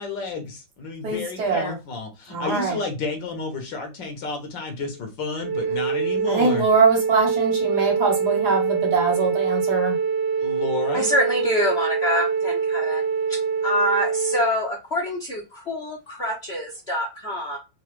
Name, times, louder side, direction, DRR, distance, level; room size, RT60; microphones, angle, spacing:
voice 1, 0.0-6.7 10.4-11.1, left 3 dB, 80° left, 4 dB, 1.9 m, -31 dB
voice 2, 1.0-1.7 2.3-2.8 6.3-10.0, right 4 dB, 60° right, 0 dB, 1.9 m, -22 dB
Wind instrument woodwind instrument, 5.4-14.5, right 6 dB, 80° right, 1.6 m, -24 dB
voice 3, 10.9-13.0 13.6-17.6, equal, 50° left, -1 dB, 0.8 m, -25 dB
4.6 x 2.3 x 3.0 m, 0.27 s
omnidirectional pair, 2.0 m